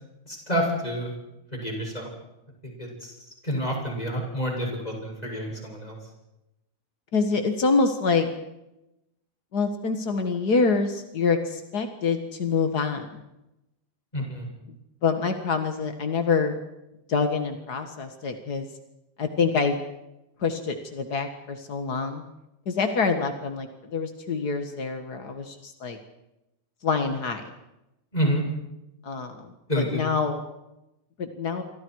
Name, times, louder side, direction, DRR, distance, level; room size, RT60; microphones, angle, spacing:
voice 1, 0.2-1.1 1.5-2.1 2.6-3.2 3.4-6.0 14.1-14.5 28.1-28.4 29.7-30.1, equal, 10° left, 0 dB, 7.2 m, -28 dB
voice 2, 7.1-8.3 9.5-13.2 15.0-16.6 17.1-18.7 19.2-19.8 20.4-22.2 22.6-26.0 26.8-27.5 29.0-30.4 31.2-31.6, left 4 dB, 60° left, 6 dB, 1.0 m, -26 dB
28.5 x 25.0 x 4.8 m, 0.91 s
omnidirectional pair, 4.6 m